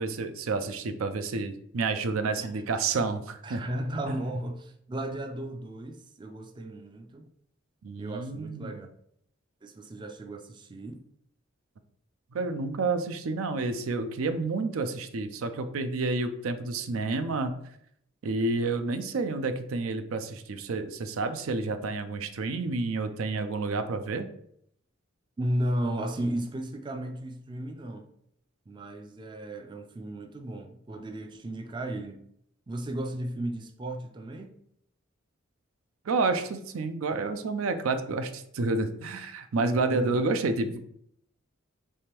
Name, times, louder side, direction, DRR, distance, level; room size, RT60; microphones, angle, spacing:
voice 1, 0.0-3.6 4.1-4.2 7.8-8.8 12.3-17.5 18.2-24.3 36.1-40.8, right 3 dB, 90° right, 0.5 m, -29 dB
voice 2, 3.4-7.3 8.0-8.9 9.6-11.0 25.4-28.1 28.7-32.2 32.7-34.5 39.7-40.3, right 1 dB, 20° right, 0.3 m, -35 dB
3.5 x 3.3 x 4.4 m
head